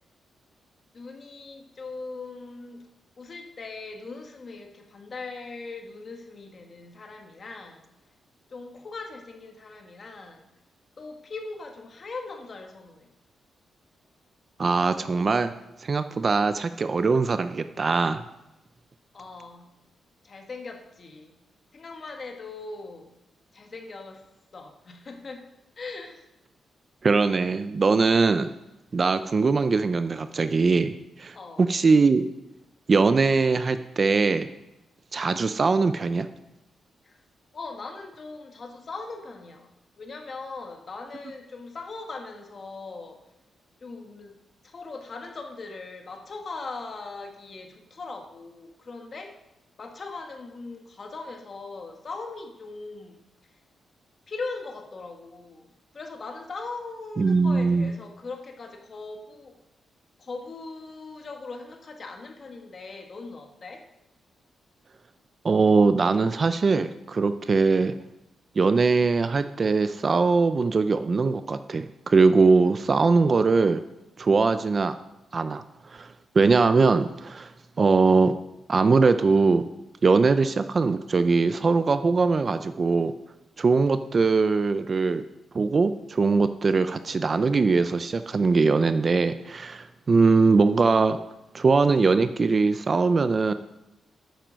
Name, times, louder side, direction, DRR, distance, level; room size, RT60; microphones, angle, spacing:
voice 1, 0.9-2.9 3.2-7.9 8.5-10.5 11.0-13.1 19.1-19.7 20.2-21.3 21.7-23.1 23.5-24.2 24.5-25.4 25.8-26.2 31.3-31.7 37.0-37.2 37.5-39.7 40.0-43.2 43.8-44.4 44.6-49.3 49.8-53.2 54.3-59.6 60.2-63.8, left 3 dB, 35° left, 4 dB, 1.5 m, -40 dB
voice 2, 14.6-15.5 15.8-18.2 27.0-28.5 28.9-32.2 32.9-34.5 35.1-36.3 57.2-57.9 65.4-67.9 68.6-73.8 74.2-74.9 75.3-75.6 75.9-77.5 77.8-78.3 78.7-79.6 80.0-83.1 83.6-85.2 85.5-91.2 91.5-93.5, right 4 dB, 30° right, 11 dB, 0.4 m, -21 dB
9.2 x 9.1 x 6.2 m, 0.93 s
wide cardioid pair, 170°, 0 cm